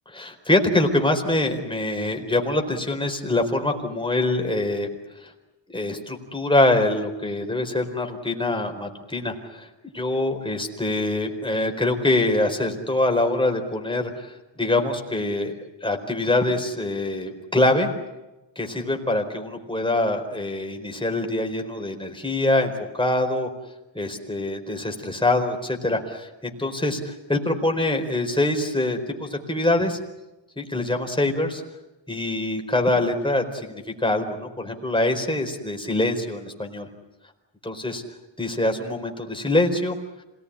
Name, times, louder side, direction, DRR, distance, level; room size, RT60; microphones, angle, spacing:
voice 1, 0.1-4.9 5.2-5.3 5.7-9.7 9.9-17.9 18.6-23.5 23.9-30.0 30.6-31.6 32.1-36.9 37.6-38.0 38.4-40.0, left 2 dB, 10° left, 3 dB, 4.4 m, -24 dB
27.0 x 19.0 x 10.0 m, 1.0 s
cardioid pair, 85°, 48 cm